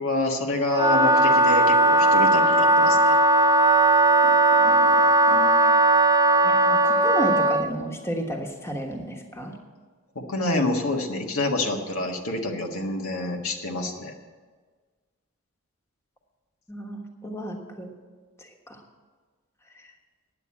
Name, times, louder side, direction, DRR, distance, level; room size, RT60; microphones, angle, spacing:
voice 1, 0.0-3.1 10.1-14.1, left 2 dB, 85° left, 2 dB, 1.5 m, -27 dB
Wind instrument woodwind instrument, 0.7-7.7, right 2 dB, 15° right, 0.4 m, -18 dB
voice 2, 4.6-5.0 5.3-5.9 6.4-9.6 16.7-17.9 18.4-18.8 19.7-19.8, right 1 dB, 10° left, 2 dB, 1.2 m, -33 dB
9.6 x 8.3 x 8.5 m, 1.4 s
head